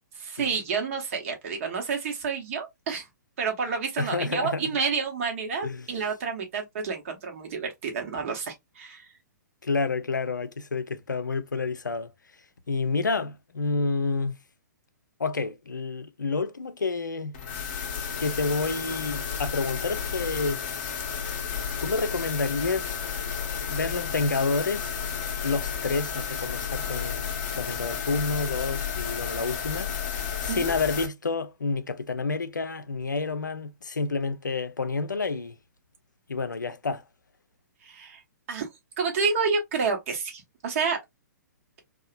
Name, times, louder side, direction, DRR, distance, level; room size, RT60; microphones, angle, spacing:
voice 1, 0.2-3.1 3.4-9.0 30.5-30.7 37.8-38.2 38.5-38.7 39.0-41.0, right 5 dB, 45° right, 1.0 m, -29 dB
voice 2, 4.0-4.7 5.6-5.9 9.6-12.1 12.7-14.3 15.2-17.3 18.2-20.6 21.8-23.0 23.7-25.1 25.4-29.9 30.4-35.6 36.3-37.0, left 4 dB, 80° left, 0.5 m, -29 dB
sound 1, 17.3-31.1, left 7 dB, 35° left, 0.7 m, -32 dB
2.8 x 2.3 x 2.4 m
figure-of-eight pair, 120°, 10 cm